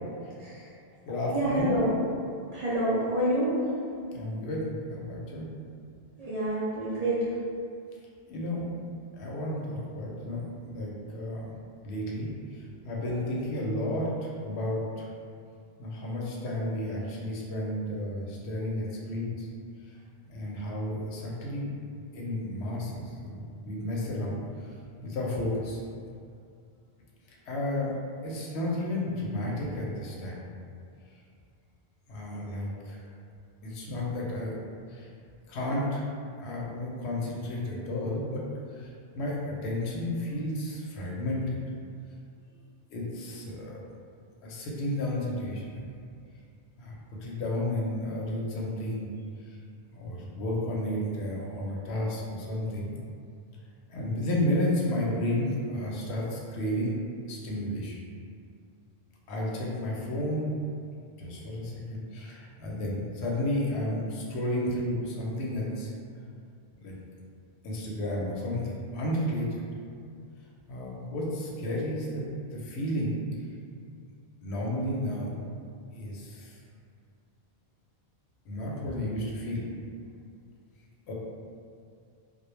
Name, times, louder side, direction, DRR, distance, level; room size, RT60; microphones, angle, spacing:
voice 1, 0.4-0.7 1.3-1.9 2.5-3.6 6.2-7.4 12.8-13.2, right 1 dB, 55° right, -9 dB, 0.4 m, -28 dB
voice 2, 1.1-1.8 4.1-5.5 8.3-8.6 9.1-11.5 11.8-15.1 15.8-19.5 20.3-21.7 22.1-24.7 25.0-25.8 27.5-27.9 28.2-30.4 32.1-33.0 33.6-34.5 34.9-35.1 35.5-36.0 36.4-38.4 38.7-38.9 39.1-41.6 42.9-43.8 44.4-45.8 46.8-49.1 49.4-49.6 49.9-52.9 53.9-56.9 57.3-58.0 59.3-60.6 61.2-65.9 66.8-66.9 67.6-69.6 70.7-72.2 72.5-73.2 74.4-75.4 75.9-76.6 78.5-79.7 81.1-81.2, left 1 dB, 90° left, -3 dB, 0.8 m, -32 dB
2.1 x 2.1 x 3.0 m, 2.4 s
omnidirectional pair, 1.1 m